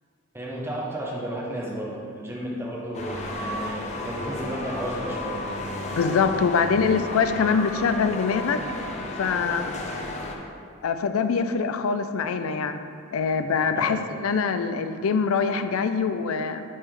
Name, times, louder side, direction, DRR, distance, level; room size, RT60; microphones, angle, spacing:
voice 1, 0.3-5.4 6.6-6.8 13.7-14.0, right 1 dB, 10° right, -5 dB, 0.9 m, -33 dB
sound 1, 2.9-10.4, left 1 dB, 35° left, 0.5 m, -33 dB
voice 2, 5.9-8.6 9.2-9.8 10.8-12.8 13.1-16.6, left 5 dB, 90° left, 9 dB, 0.4 m, -24 dB
9.2 x 3.4 x 3.7 m, 2.4 s
head